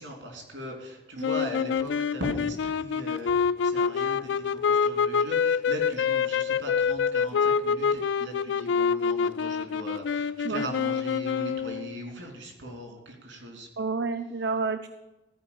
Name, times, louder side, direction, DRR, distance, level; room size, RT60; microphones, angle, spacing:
voice 1, 0.0-13.7, equal, 85° right, 1 dB, 3.3 m, -39 dB
sound 1, 1.2-12.0, left 6 dB, 75° left, 0.3 m, -26 dB
voice 2, 13.8-14.9, right 4 dB, 70° right, 9 dB, 0.5 m, -29 dB
14.0 x 5.1 x 7.2 m, 1.1 s
head